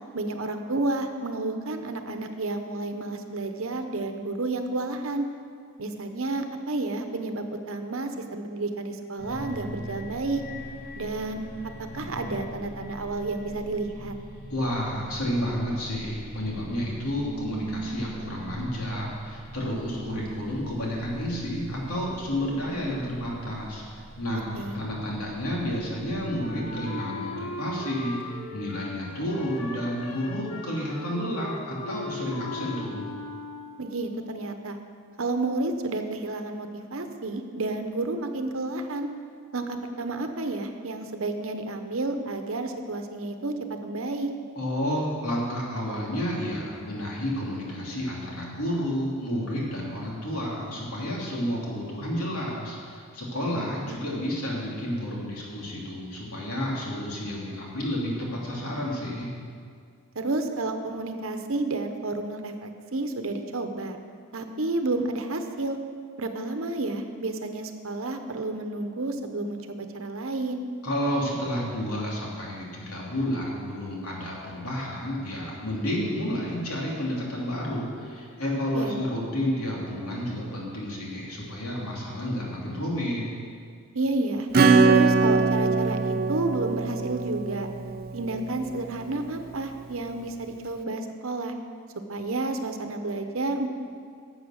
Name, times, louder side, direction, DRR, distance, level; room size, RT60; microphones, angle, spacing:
voice 1, 0.1-5.3 5.8-10.4 11.0-11.4 11.9-14.1 24.3-24.8 33.8-34.8 35.2-39.1 39.5-43.6 43.8-44.3 53.9-54.3 60.1-64.0 64.3-65.8 66.2-70.6 78.7-79.0 83.9-84.5 84.8-87.7 88.1-91.5 92.1-93.7, right 2 dB, 65° right, 6 dB, 0.9 m, -31 dB
sound 1, 9.2-26.9, right 1 dB, 45° left, 3.1 m, -40 dB
voice 2, 14.5-33.1 44.5-59.3 70.8-83.3, equal, 90° left, -4 dB, 2.9 m, -31 dB
Wind instrument woodwind instrument, 26.4-33.9, left 2 dB, 70° left, 1.7 m, -38 dB
Acoustic guitar / Strum, 84.5-88.8, right 4 dB, 45° right, 0.4 m, -22 dB
11.5 x 7.8 x 6.5 m, 2.2 s
head